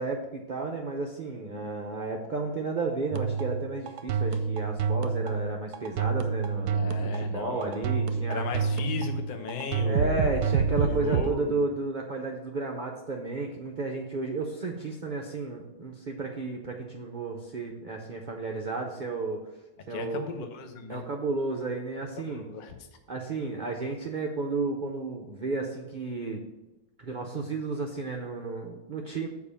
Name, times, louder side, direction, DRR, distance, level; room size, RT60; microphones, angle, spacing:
voice 1, 0.0-8.4 9.8-19.4 19.9-20.3 20.9-22.4 23.1-26.4 27.0-29.3, right 3 dB, 55° right, 1 dB, 0.5 m, -32 dB
sound 1, 3.1-11.3, right 6 dB, 70° right, 1.1 m, -28 dB
voice 2, 6.7-7.7 8.3-10.3 10.7-11.7 19.9-21.0 22.2-22.7, left 5 dB, 40° left, 5 dB, 0.6 m, -36 dB
7.1 x 4.7 x 7.0 m, 1.0 s
omnidirectional pair, 2.0 m